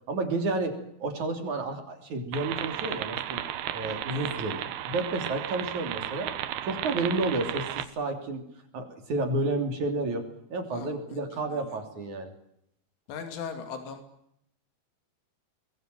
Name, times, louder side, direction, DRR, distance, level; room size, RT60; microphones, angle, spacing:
voice 1, 0.1-3.4 3.7-6.3 6.6-8.4 8.7-10.2 10.5-12.3, right 2 dB, 45° right, 5 dB, 4.2 m, -31 dB
sound 1, 2.3-7.9, right 12 dB, 70° right, 2.8 m, -34 dB
voice 2, 10.7-11.7 13.1-14.0, left 6 dB, 85° left, 6 dB, 5.3 m, -40 dB
25.0 x 21.5 x 7.9 m, 0.74 s
omnidirectional pair, 5.4 m